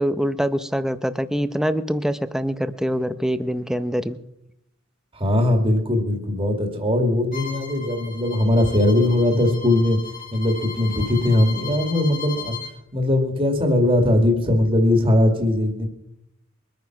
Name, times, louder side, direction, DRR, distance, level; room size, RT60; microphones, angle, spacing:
voice 1, 0.0-4.2, equal, 5° right, 12 dB, 0.7 m, -24 dB
voice 2, 5.1-10.0 10.3-12.6 12.9-15.9, left 1 dB, 25° right, 3 dB, 2.2 m, -20 dB
Bowed string instrument, 7.3-12.7, left 6 dB, 45° left, 2.9 m, -36 dB
23.0 x 9.4 x 6.0 m, 0.81 s
head